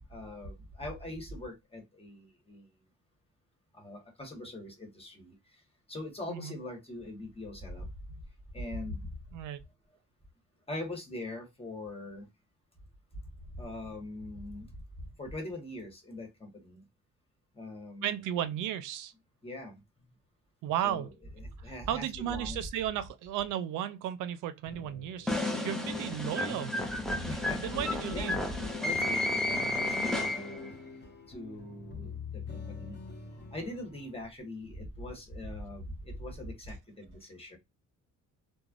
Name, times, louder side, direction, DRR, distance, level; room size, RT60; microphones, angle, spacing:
voice 1, 0.1-2.6 3.8-5.3 5.9-7.8 8.5-9.0 10.7-12.2 13.6-14.7 15.2-16.8 17.6-18.2 19.4-19.8 20.8-21.1 21.4-22.6 27.3-27.6 28.1-28.5 28.8-30.7 31.3-32.2 32.6-32.9 33.5-35.8 36.2-37.6, left 1 dB, 20° left, 1.4 m, -41 dB
voice 2, 18.0-19.1 20.6-21.1 21.6-26.7 27.6-28.4, right 11 dB, 90° right, 0.5 m, -34 dB
sound 1, 24.7-34.1, left 4 dB, 35° left, 0.9 m, -45 dB
sound 2, 25.3-30.7, left 2 dB, ahead, 0.6 m, -32 dB
3.1 x 2.1 x 2.4 m
cardioid pair, 90°, 30 cm